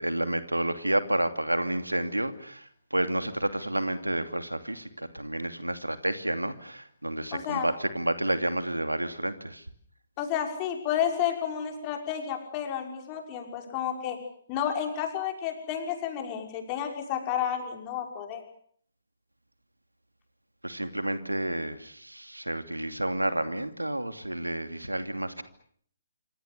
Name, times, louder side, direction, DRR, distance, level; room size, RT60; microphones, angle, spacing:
voice 1, 0.0-9.6 20.6-25.4, right 1 dB, 85° right, 10 dB, 2.8 m, -30 dB
voice 2, 7.3-7.7 10.2-14.2 14.5-18.4, left 9 dB, 25° left, 3 dB, 5.9 m, -31 dB
27.0 x 26.0 x 6.9 m, 0.63 s
figure-of-eight pair, 135°, 0 cm